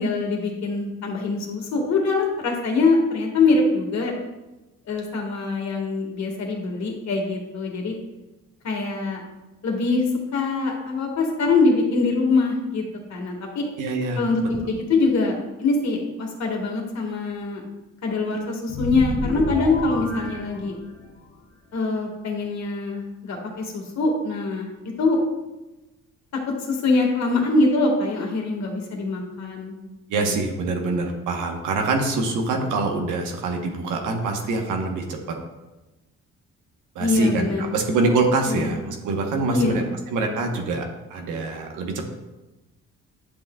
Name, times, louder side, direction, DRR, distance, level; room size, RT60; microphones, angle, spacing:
voice 1, 0.0-4.1 4.9-7.9 8.6-9.2 9.6-10.0 10.3-12.8 13.1-13.6 14.2-17.6 18.0-20.7 21.7-25.2 26.7-29.8 30.1-30.4 37.0-37.7 38.5-38.8 39.5-39.8, left 3 dB, 65° left, 1 dB, 1.8 m, -23 dB
voice 2, 13.8-14.2 30.1-35.2 36.9-42.1, right 3 dB, 85° right, 2 dB, 1.1 m, -25 dB
sound 1, 18.7-21.2, left 2 dB, 45° left, 1.2 m, -30 dB
10.0 x 5.7 x 2.3 m, 1.1 s
cardioid pair, 90°, 30 cm